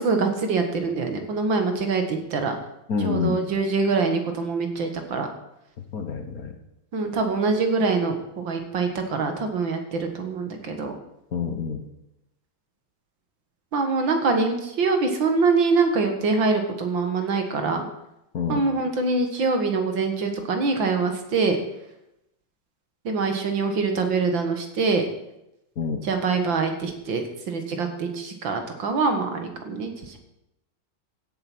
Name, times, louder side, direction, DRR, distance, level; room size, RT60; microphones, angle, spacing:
voice 1, 0.0-2.6 3.0-5.3 6.9-11.0 13.7-17.8 18.5-21.6 23.1-25.0 26.0-30.2, right 4 dB, 65° right, 5 dB, 2.3 m, -24 dB
voice 2, 2.9-3.4 5.8-6.5 11.3-11.8 18.3-18.6 25.8-26.0, left 5 dB, 50° left, 6 dB, 1.5 m, -27 dB
15.5 x 7.9 x 6.1 m, 0.87 s
omnidirectional pair, 2.2 m